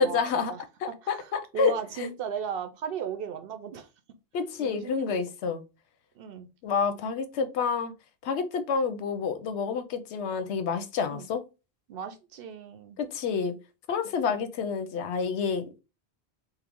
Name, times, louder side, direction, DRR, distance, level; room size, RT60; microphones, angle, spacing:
voice 1, 0.0-0.5 0.8-2.1 4.3-5.6 6.6-7.9 8.2-11.4 13.0-13.6 13.9-15.8, left 5 dB, 85° left, 0.9 m, -28 dB
voice 2, 1.0-3.9 4.6-5.1 6.1-6.5 11.1-11.3 11.9-13.0, right 8 dB, 65° right, 0.7 m, -36 dB
4.5 x 2.0 x 3.4 m
omnidirectional pair, 1.1 m